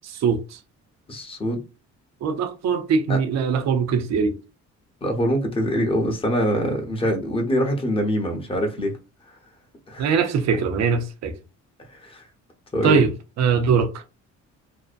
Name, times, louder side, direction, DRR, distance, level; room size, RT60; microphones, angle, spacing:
voice 1, 0.0-0.6 2.2-4.4 10.0-11.4 12.8-13.1 13.4-13.9, right 6 dB, 60° right, 0.6 m, -21 dB
voice 2, 1.1-1.6 3.1-3.2 5.0-8.9 9.9-10.1 12.0-12.2 12.7-13.0, equal, 20° left, 0.8 m, -24 dB
2.6 x 2.1 x 2.4 m
cardioid pair, 90°, 30 cm